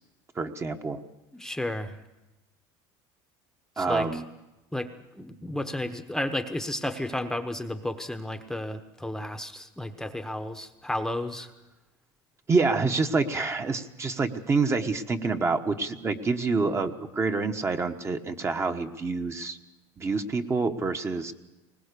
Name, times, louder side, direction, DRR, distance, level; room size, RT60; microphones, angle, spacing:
voice 1, 0.3-1.0 3.8-4.2 12.5-19.6 20.0-21.3, right 4 dB, 25° right, 6 dB, 1.2 m, -27 dB
voice 2, 1.3-2.0 3.8-4.2 4.7-11.5, left 1 dB, 5° left, 8 dB, 1.0 m, -32 dB
21.0 x 19.5 x 6.8 m, 1.0 s
supercardioid pair, 115°, 11 cm